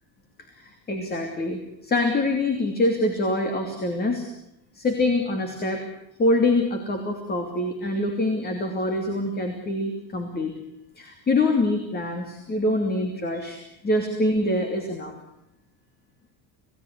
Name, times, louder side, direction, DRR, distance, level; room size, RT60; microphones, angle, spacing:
voice 1, 0.5-4.2 4.7-5.8 6.2-10.5 11.0-15.2, left 2 dB, 20° left, 5 dB, 2.9 m, -25 dB
28.0 x 18.0 x 9.6 m, 0.79 s
cardioid pair, 175°, 46 cm